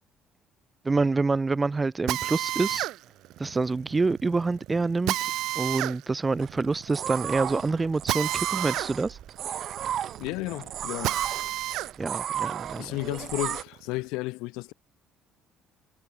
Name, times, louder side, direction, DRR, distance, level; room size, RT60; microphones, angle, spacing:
voice 1, 0.8-2.9 3.4-5.3 5.6-9.2 12.0-12.9, right 3 dB, 20° right, 0.3 m, -27 dB
Drill, 2.1-11.9 12.4-14.0, right 16 dB, 75° right, 0.7 m, -32 dB
sound 1, 6.4-13.6, right 10 dB, 55° right, 1.5 m, -34 dB
voice 2, 10.2-11.2 12.8-14.7, left 23 dB, 85° left, 1.0 m, -33 dB
supercardioid pair, 90°, 0 cm